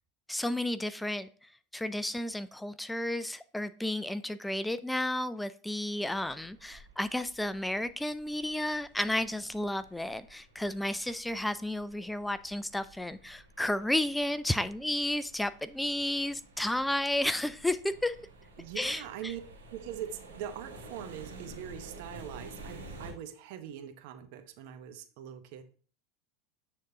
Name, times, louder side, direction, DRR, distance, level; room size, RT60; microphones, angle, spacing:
voice 1, 0.3-1.3 1.7-18.2 18.8-19.0, left 1 dB, 5° left, 14 dB, 0.3 m, -32 dB
sound 1, 6.1-23.1, right 2 dB, 90° right, 1.7 m, -52 dB
voice 2, 18.6-19.4 19.7-25.6, right 10 dB, 60° right, 8 dB, 0.8 m, -42 dB
9.2 x 3.7 x 2.8 m, 0.43 s
hypercardioid pair, 90°, 0 cm